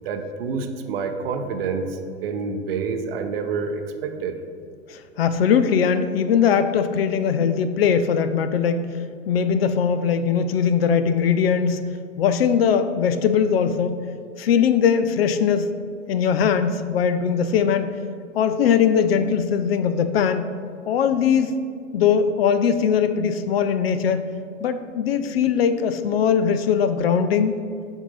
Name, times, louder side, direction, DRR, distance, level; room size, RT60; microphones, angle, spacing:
voice 1, 0.0-4.4, right 5 dB, 50° right, 6 dB, 0.7 m, -28 dB
voice 2, 4.9-8.9 9.3-14.1 14.4-15.7 16.1-17.9 18.3-20.5 20.9-21.5 21.9-24.3 24.6-27.5, left 7 dB, 50° left, 10 dB, 0.4 m, -20 dB
7.2 x 2.7 x 5.1 m, 2.3 s
figure-of-eight pair, 100°, 38 cm